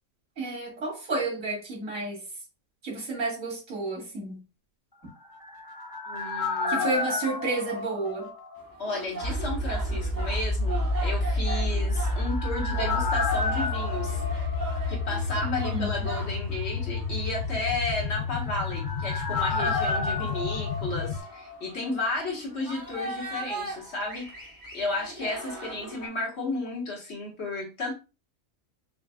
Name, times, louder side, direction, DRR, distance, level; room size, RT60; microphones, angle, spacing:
voice 1, 0.4-2.2 2.8-4.4 6.7-8.3 15.4-15.9, right 2 dB, 85° right, 2.4 m, -31 dB
sound 1, 5.1-8.9 9.2-9.3 11.7-15.4 15.7-15.8 18.0-21.9 22.1-22.2, left 3 dB, 25° left, 0.5 m, -32 dB
voice 2, 6.1-6.9 8.8-14.2 14.9-24.3 24.7-27.9, left 2 dB, 55° left, 1.5 m, -33 dB
sound 2, 8.6-26.1, right 3 dB, 15° right, 1.1 m, -40 dB
sound 3, 9.2-21.2, left 3 dB, 85° left, 0.3 m, -30 dB
5.7 x 2.3 x 2.3 m
omnidirectional pair, 1.4 m